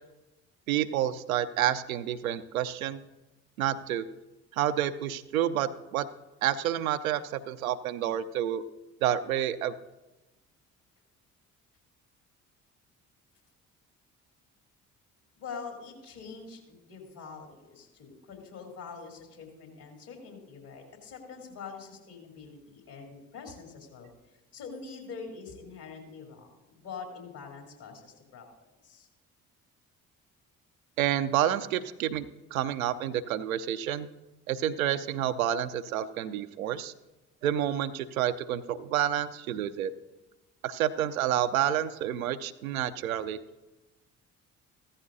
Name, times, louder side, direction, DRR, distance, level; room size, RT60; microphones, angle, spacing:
voice 1, 0.7-3.0 3.6-4.0 4.5-6.1 6.4-8.6 9.0-9.7 31.0-32.3 32.5-34.1 34.5-36.9 37.4-39.9 40.6-43.4, right 11 dB, 80° right, 11 dB, 0.6 m, -29 dB
voice 2, 15.4-24.1 24.5-28.5 28.8-29.1, left 5 dB, 60° left, 1 dB, 3.4 m, -44 dB
15.0 x 14.0 x 2.7 m, 1.0 s
figure-of-eight pair, 45°, 41 cm